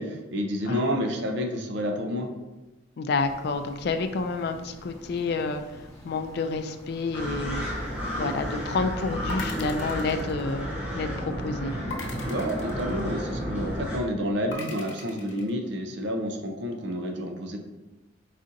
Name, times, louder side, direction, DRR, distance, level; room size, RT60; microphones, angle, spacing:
voice 1, 0.0-2.3 12.2-17.6, equal, 65° right, 4 dB, 0.5 m, -29 dB
voice 2, 3.0-5.6 6.0-7.6 8.2-10.7 10.9-11.7, left 4 dB, 55° left, 7 dB, 0.3 m, -29 dB
sound 1, 3.2-10.2, equal, 20° left, 0.9 m, -47 dB
sound 2, 7.1-14.0, equal, 10° right, 0.9 m, -32 dB
sound 3, 9.3-11.0 11.9-13.5 14.5-15.5, left 3 dB, 90° left, 0.8 m, -40 dB
4.1 x 3.8 x 2.6 m, 1.1 s
head